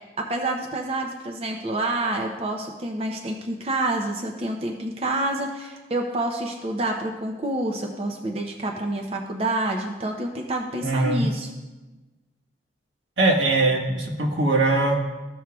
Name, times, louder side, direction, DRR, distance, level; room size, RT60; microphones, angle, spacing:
voice 1, 0.2-11.5, right 2 dB, 30° right, 1 dB, 0.6 m, -28 dB
voice 2, 10.8-11.3 13.2-15.0, right 2 dB, 80° right, -1 dB, 1.5 m, -21 dB
15.0 x 6.2 x 2.3 m, 1.2 s
head